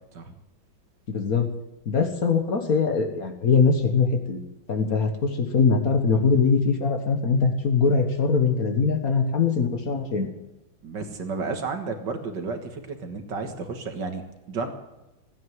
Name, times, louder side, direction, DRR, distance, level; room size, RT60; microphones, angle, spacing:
voice 1, 1.1-1.5 1.8-4.4 4.7-10.3, left 5 dB, 50° left, 5 dB, 1.7 m, -22 dB
voice 2, 10.8-14.7, right 4 dB, 60° right, 6 dB, 2.2 m, -32 dB
16.0 x 9.5 x 9.4 m, 0.96 s
omnidirectional pair, 2.2 m